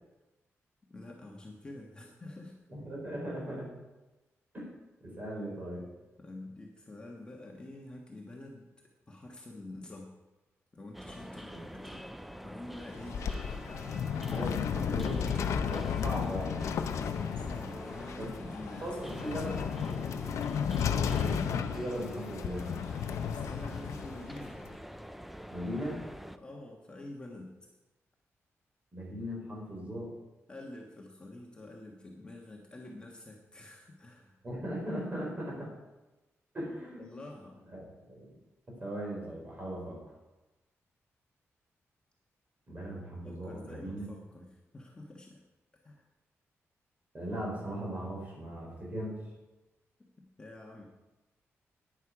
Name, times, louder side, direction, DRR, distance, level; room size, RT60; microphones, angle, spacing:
voice 1, 0.9-2.5 6.2-8.7 9.1-10.2 10.7-12.0 12.4-15.4 17.3-19.5 23.3-24.6 26.4-27.7 30.5-34.4 37.0-37.6 43.2-45.4 45.8-46.0 50.2-50.8, left 2 dB, 20° left, -1 dB, 1.3 m, -47 dB
voice 2, 2.7-3.7 4.5-4.7 5.0-5.9 11.5-11.9 14.3-16.6 18.2-18.3 18.8-19.8 20.9-22.7 25.5-26.0 28.9-30.1 34.4-35.7 36.5-37.2 37.7-37.8 38.1-38.3 38.7-40.0 42.7-44.1 47.1-49.2, equal, 30° right, -2 dB, 4.3 m, -38 dB
sound 1, 10.9-26.4, equal, ahead, 0.4 m, -46 dB
sound 2, 12.8-24.7, left 7 dB, 90° left, 0.6 m, -34 dB
11.0 x 9.9 x 4.9 m, 1.1 s
wide cardioid pair, 155°, 5 cm